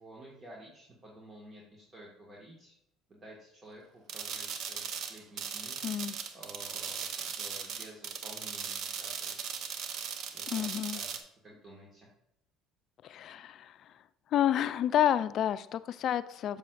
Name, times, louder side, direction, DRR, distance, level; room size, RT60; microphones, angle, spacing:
voice 1, 0.0-2.7 3.1-9.7 10.3-12.1, right 1 dB, 35° right, -3 dB, 1.7 m, -52 dB
sound 1, 4.1-11.2, right 7 dB, 60° right, 0.8 m, -38 dB
voice 2, 5.8-6.1 10.5-11.0 13.0-13.7 14.3-16.6, left 10 dB, 55° left, 15 dB, 0.4 m, -29 dB
7.5 x 7.0 x 2.5 m, 0.79 s
supercardioid pair, 85°, 0 cm